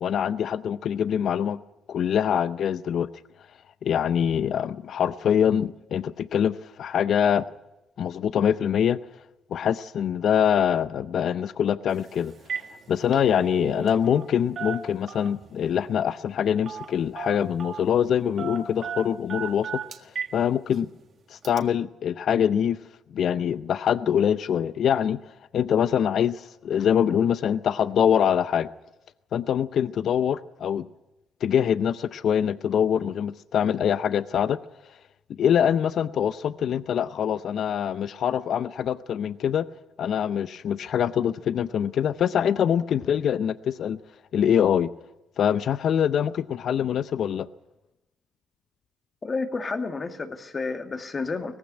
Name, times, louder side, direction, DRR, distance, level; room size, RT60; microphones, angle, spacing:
voice 1, 0.0-1.6 1.9-3.1 3.8-7.4 8.0-9.0 9.5-12.3 12.9-19.8 20.3-20.9 21.3-22.8 23.1-25.2 25.5-28.7 29.3-30.9 31.4-34.6 35.3-39.7 40.0-44.0 44.3-44.9 45.4-47.5, left 8 dB, 65° left, 14 dB, 0.6 m, -24 dB
Telephone, 11.9-12.1 12.4-12.7 13.0-14.3 14.6-15.5 16.7-16.9 17.2-17.9 18.4-20.4 20.7-20.8 21.4-21.6, right 6 dB, 55° right, 1.8 m, -35 dB
voice 2, 49.2-51.6, left 4 dB, 35° left, 6 dB, 2.2 m, -30 dB
18.5 x 15.0 x 9.6 m, 0.98 s
cardioid pair, 90°, 0 cm